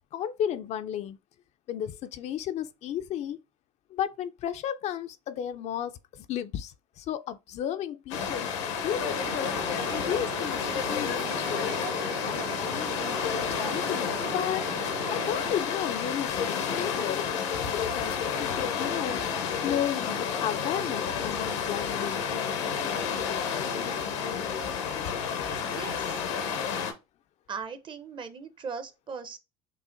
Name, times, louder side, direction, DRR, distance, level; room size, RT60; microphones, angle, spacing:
voice 1, 0.1-1.2 1.7-3.4 3.9-11.8 12.2-14.7 15.1-17.3 17.7-22.3, left 10 dB, 50° left, 0.4 m, -34 dB
sound 1, 8.1-26.9, left 7 dB, 90° left, 0.9 m, -30 dB
sound 2, 9.0-15.5, right 6 dB, 75° right, 0.9 m, -39 dB
voice 2, 25.6-26.2 27.5-29.4, right 5 dB, 35° right, 0.7 m, -39 dB
6.1 x 2.1 x 2.5 m
supercardioid pair, 90°, 15 cm